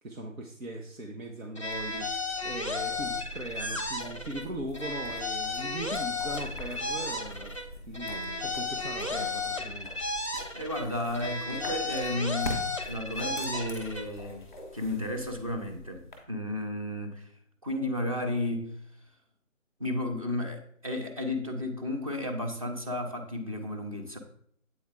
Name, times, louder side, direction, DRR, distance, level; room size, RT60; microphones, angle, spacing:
voice 1, 0.0-9.9, right 1 dB, 85° right, 0 dB, 1.1 m, -39 dB
sound 1, 1.5-4.5 4.7-7.7 7.9-10.9 11.1-14.1, left 3 dB, 25° left, 0.5 m, -34 dB
sound 2, 1.7-16.2, equal, 5° left, 0.9 m, -43 dB
voice 2, 10.5-17.3 17.6-18.7 19.8-24.2, left 1 dB, 25° right, 5 dB, 0.7 m, -33 dB
8.0 x 4.6 x 3.6 m, 0.64 s
figure-of-eight pair, 155°, 39 cm